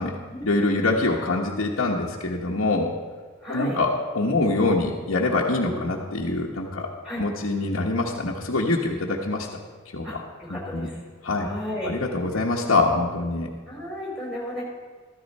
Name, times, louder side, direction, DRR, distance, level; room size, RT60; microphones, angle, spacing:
voice 1, 0.4-2.9 3.5-6.9 7.2-9.5 9.9-10.2 10.5-10.9 11.2-11.5 11.8-13.5, left 2 dB, 85° left, -3 dB, 1.3 m, -24 dB
voice 2, 3.4-3.8 5.6-5.8 7.0-7.2 10.0-11.0 11.4-11.9 12.3-12.4 13.7-14.6, equal, ahead, -4 dB, 3.9 m, -34 dB
14.0 x 13.5 x 4.3 m, 1.5 s
head